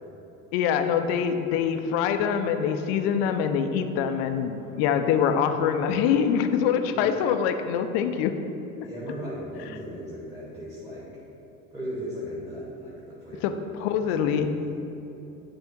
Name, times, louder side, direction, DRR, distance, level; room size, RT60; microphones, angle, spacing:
voice 1, 0.5-8.3 13.4-13.5 13.8-14.5, left 7 dB, 50° left, 7 dB, 0.6 m, -24 dB
voice 2, 8.8-11.1 11.7-13.6 13.9-14.8, equal, 5° right, -8 dB, 1.6 m, -38 dB
10.0 x 3.5 x 4.4 m, 3.0 s
figure-of-eight pair, 70°, 40 cm